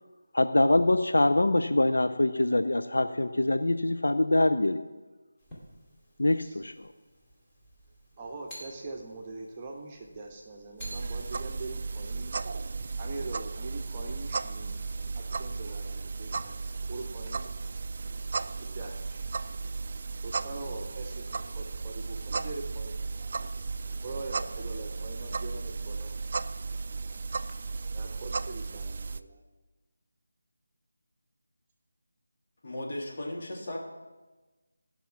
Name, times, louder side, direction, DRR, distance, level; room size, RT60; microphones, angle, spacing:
voice 1, 0.3-4.8 6.2-6.9, left 2 dB, 80° left, 9 dB, 0.6 m, -24 dB
sound 1, 5.4-13.1, equal, 15° left, 2.4 m, -53 dB
voice 2, 8.2-12.4 13.0-14.8 15.1-16.6 16.9-17.5 18.6-19.2 20.2-23.0 24.0-26.2 27.9-29.4, right 2 dB, 20° right, 0 dB, 1.2 m, -42 dB
sound 2, 10.8-29.2, right 4 dB, 45° right, 0.4 m, -35 dB
voice 3, 32.6-33.8, left 1 dB, 45° left, -3 dB, 2.9 m, -36 dB
15.0 x 5.7 x 5.8 m, 1.2 s
figure-of-eight pair, 160°, 0 cm